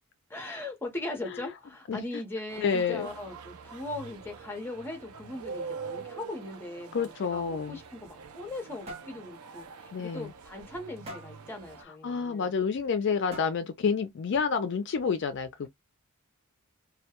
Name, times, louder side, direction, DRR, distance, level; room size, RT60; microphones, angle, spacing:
voice 1, 0.3-12.6, left 2 dB, 10° left, 0.7 m, -39 dB
voice 2, 1.9-2.2 2.6-3.1 6.9-7.8 9.9-10.3 12.0-15.7, left 6 dB, 55° left, 0.4 m, -29 dB
sound 1, 2.5-11.8, right 5 dB, 90° right, 0.5 m, -45 dB
sound 2, 8.0-8.6 8.9-9.2 9.6-9.8 10.1-10.2 11.1-11.4 12.6-12.7 13.3-13.8, right 1 dB, 25° right, 0.8 m, -44 dB
2.2 x 2.2 x 2.8 m
head